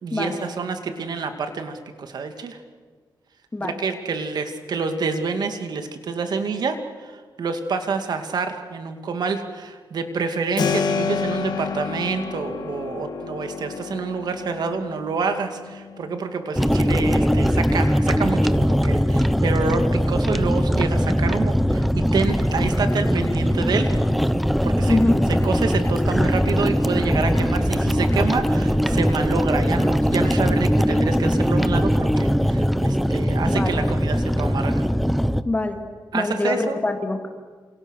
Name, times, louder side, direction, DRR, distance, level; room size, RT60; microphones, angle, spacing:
voice 1, 0.0-2.6 3.6-23.9 24.6-25.0 25.4-34.8 36.1-36.8, right 4 dB, 60° right, 7 dB, 2.4 m, -27 dB
Keyboard (musical), 10.6-21.2, left 5 dB, 65° left, 1.9 m, -32 dB
sound 1, 16.6-35.4, equal, ahead, 0.8 m, -20 dB
voice 2, 24.8-25.2 33.5-33.8 35.4-35.8 36.1-37.3, left 2 dB, 20° left, 5 dB, 2.6 m, -24 dB
28.5 x 28.0 x 6.6 m, 1.5 s
wide cardioid pair, 155°, 8 cm